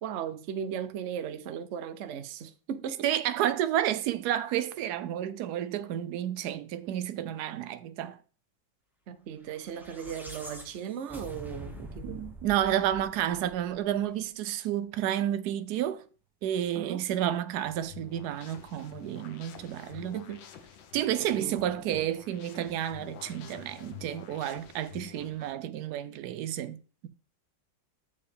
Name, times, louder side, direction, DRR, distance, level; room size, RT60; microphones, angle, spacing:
voice 1, 0.0-3.1 9.1-12.2 16.7-17.1 19.9-20.4 21.3-21.6, right 8 dB, 90° right, 0.6 m, -37 dB
voice 2, 3.0-8.2 12.0-16.0 16.4-20.2 20.9-26.8, right 11 dB, 70° right, 1.0 m, -31 dB
sound 1, 9.6-14.0, left 1 dB, ahead, 0.8 m, -45 dB
sound 2, 17.5-25.5, left 9 dB, 75° left, 1.6 m, -49 dB
6.9 x 6.7 x 3.4 m
omnidirectional pair, 2.1 m